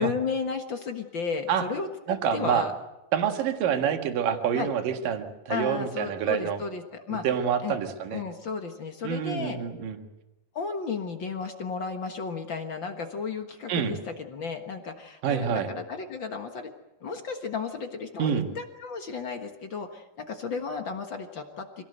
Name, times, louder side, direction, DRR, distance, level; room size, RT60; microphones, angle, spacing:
voice 1, 0.0-1.9 2.3-2.7 4.5-4.7 5.5-7.2 7.6-7.8 8.1-9.6 10.5-16.7 17.0-21.8, left 5 dB, 55° left, 5 dB, 1.3 m, -33 dB
voice 2, 2.1-2.7 3.1-6.6 7.1-8.2 9.0-10.0 13.7-13.9 15.2-15.7 18.2-18.5, right 8 dB, 65° right, 6 dB, 3.3 m, -27 dB
26.5 x 18.0 x 7.9 m, 0.99 s
omnidirectional pair, 4.3 m